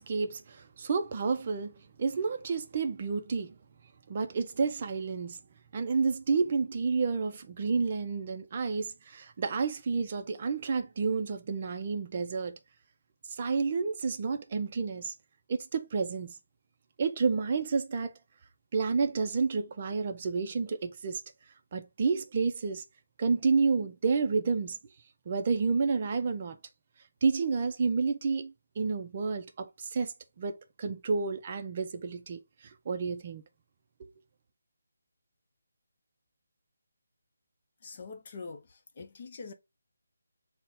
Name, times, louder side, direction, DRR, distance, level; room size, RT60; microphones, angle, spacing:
voice 1, 0.0-3.5 4.1-5.4 5.7-12.6 13.3-15.1 15.5-16.4 17.0-18.1 18.7-21.2 21.7-22.8 23.2-24.8 25.3-26.6 27.2-33.4 34.0-34.1, right 4 dB, 35° right, 0.4 m, -30 dB
voice 2, 37.8-39.5, left 4 dB, 35° left, 0.6 m, -44 dB
3.9 x 2.1 x 4.2 m
figure-of-eight pair, 170°, 0 cm